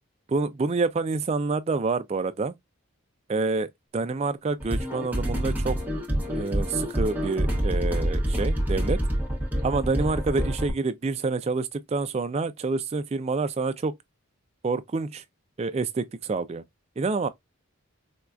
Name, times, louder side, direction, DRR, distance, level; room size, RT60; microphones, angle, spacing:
voice 1, 0.3-2.5 3.3-5.8 6.3-9.0 9.6-13.9 14.6-15.2 15.6-16.6 17.0-17.3, right 3 dB, 30° right, 0.3 m, -27 dB
sound 1, 4.6-10.7, equal, 10° right, 0.8 m, -27 dB
4.4 x 2.3 x 2.4 m
head